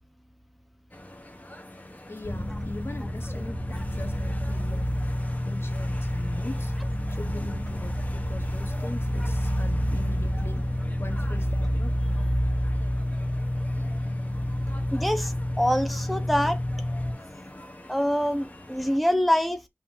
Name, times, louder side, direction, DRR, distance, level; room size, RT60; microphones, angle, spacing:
sound 1, 0.9-19.0, left 1 dB, 35° left, 1.5 m, -45 dB
voice 1, 2.1-6.7 7.1-10.7 11.0-12.2, left 2 dB, 60° left, 1.4 m, -41 dB
sound 2, 2.2-17.1, equal, 80° left, 2.3 m, -28 dB
voice 2, 14.9-16.6 17.9-19.6, equal, ahead, 1.0 m, -25 dB
5.8 x 3.4 x 5.0 m
wide cardioid pair, 50°, 5 cm